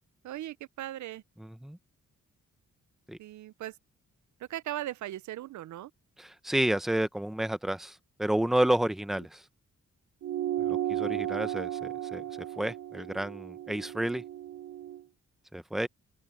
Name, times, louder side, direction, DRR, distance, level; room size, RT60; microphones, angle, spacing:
voice 1, 0.2-1.2 3.2-3.8 4.5-5.9, right 14 dB, 75° right, 0.5 m, -38 dB
voice 2, 1.4-1.8 3.1-3.2 6.2-9.4 10.6-12.2 12.6-14.2 15.5-15.9, right 1 dB, ahead, 0.7 m, -30 dB
sound 1, 10.2-15.0, right 12 dB, 60° right, 0.8 m, -34 dB
open air
wide cardioid pair, 180°, 30 cm